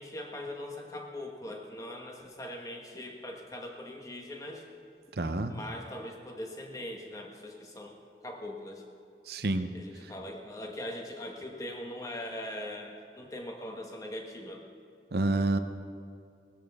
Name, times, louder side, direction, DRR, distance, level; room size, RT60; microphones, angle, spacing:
voice 1, 0.0-4.7 5.5-8.0 8.2-8.8 9.7-14.6, left 1 dB, 20° left, 2 dB, 1.2 m, -41 dB
voice 2, 5.2-5.5 9.3-9.7 15.1-15.6, right 2 dB, 65° right, 9 dB, 0.7 m, -28 dB
18.5 x 13.0 x 3.6 m, 2.4 s
head